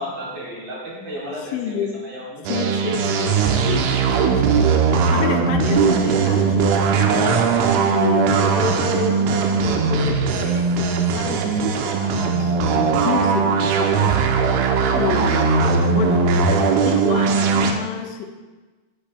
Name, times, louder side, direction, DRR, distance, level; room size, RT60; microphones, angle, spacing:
voice 1, 0.0-2.8, equal, 55° right, -5 dB, 3.8 m, -33 dB
voice 2, 1.5-1.9 2.5-7.5 7.9-10.7 11.1-14.2 14.9-18.3, left 6 dB, 85° left, 3 dB, 3.0 m, -29 dB
sound 1, 2.5-17.7, right 5 dB, 85° right, 3.1 m, -19 dB
12.5 x 8.9 x 2.2 m, 1.3 s
omnidirectional pair, 5.5 m